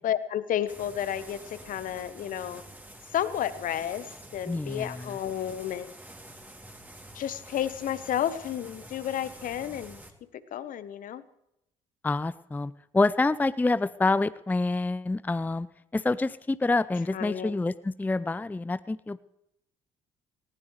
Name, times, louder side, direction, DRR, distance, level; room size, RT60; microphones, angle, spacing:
voice 1, 0.0-2.6 3.1-5.9 7.1-10.0 10.5-11.2 17.1-17.6, left 10 dB, 55° left, 14 dB, 1.1 m, -31 dB
sound 1, 0.7-10.1, right 1 dB, 10° right, 2.9 m, -48 dB
voice 2, 4.5-4.9 12.0-15.7 15.9-19.2, left 3 dB, 10° left, 16 dB, 0.5 m, -27 dB
19.5 x 19.0 x 3.3 m, 0.83 s
figure-of-eight pair, 50°, 17 cm